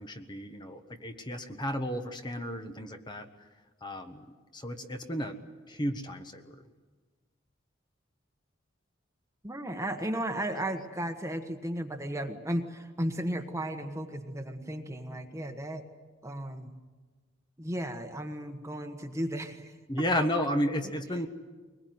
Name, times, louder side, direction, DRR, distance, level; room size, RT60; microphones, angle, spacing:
voice 1, 0.0-3.3 3.8-4.3 4.5-5.4 5.7-6.6 19.9-21.3, equal, 25° left, 6 dB, 1.4 m, -32 dB
voice 2, 9.4-15.8 16.2-16.8 17.6-19.7, right 1 dB, 15° right, 6 dB, 1.3 m, -35 dB
23.0 x 20.5 x 9.5 m, 1.3 s
head